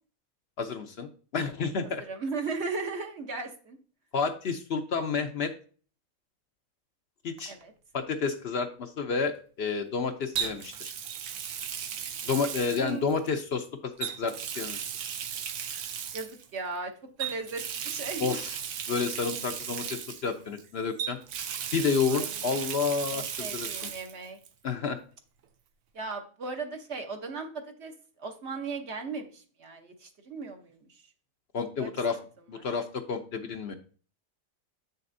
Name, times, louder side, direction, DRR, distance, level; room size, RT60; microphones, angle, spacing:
voice 1, 0.6-2.0 4.1-5.5 7.2-7.5 7.9-10.9 12.2-14.9 18.2-18.6 18.9-21.2 21.7-23.8 24.6-25.0 31.5-32.2 32.5-33.7, left 5 dB, 60° left, 6 dB, 0.8 m, -30 dB
voice 2, 2.0-3.8 7.5-7.7 12.8-13.0 16.1-16.9 17.2-18.4 22.1-22.4 23.1-24.4 25.9-31.1 31.8-31.9 32.5-32.7, right 4 dB, 60° right, 4 dB, 1.2 m, -37 dB
Water tap faucet, 7.4-7.6 10.4-13.4 14.0-16.5 17.2-20.6 21.0-24.1 24.4-24.5 26.1-26.2, right 8 dB, 80° right, 1.1 m, -36 dB
8.2 x 6.6 x 2.6 m, 0.40 s
omnidirectional pair, 1.4 m